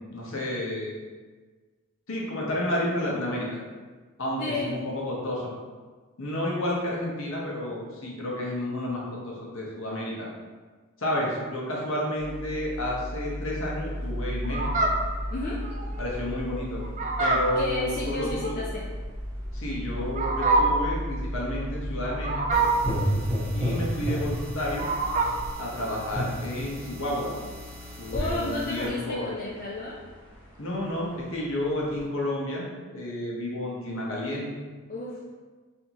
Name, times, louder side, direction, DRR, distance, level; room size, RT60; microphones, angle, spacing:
voice 1, 0.1-0.9 2.1-3.5 4.2-5.5 6.2-10.3 11.0-14.7 16.0-16.8 17.2-18.6 19.5-22.6 23.5-24.9 25.6-27.3 28.0-29.3 30.6-32.7 32.9-34.5, left 1 dB, 65° left, -3 dB, 0.9 m, -31 dB
voice 2, 4.4-4.8 15.3-15.6 17.6-18.8 23.1-23.3 28.1-30.0 34.9-35.3, left 2 dB, 40° left, -5 dB, 0.4 m, -32 dB
sound 1, 12.2-32.1, equal, 10° left, 0.9 m, -37 dB
Fowl, 14.4-25.5, right 3 dB, 35° right, 0.3 m, -27 dB
sound 2, 22.5-28.9, equal, 15° right, 1.0 m, -32 dB
4.2 x 2.7 x 2.9 m, 1.4 s
head